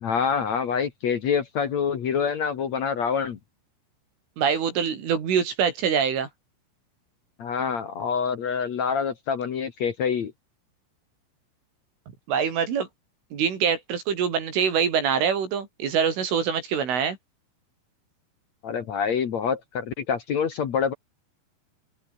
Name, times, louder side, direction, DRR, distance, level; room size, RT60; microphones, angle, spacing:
voice 1, 0.0-3.4 7.4-10.3 18.6-20.9, left 6 dB, 65° left, 1.7 m, -26 dB
voice 2, 4.4-6.3 12.3-12.9 13.3-17.2, right 7 dB, 70° right, 6.5 m, -24 dB
open air
omnidirectional pair, 5.9 m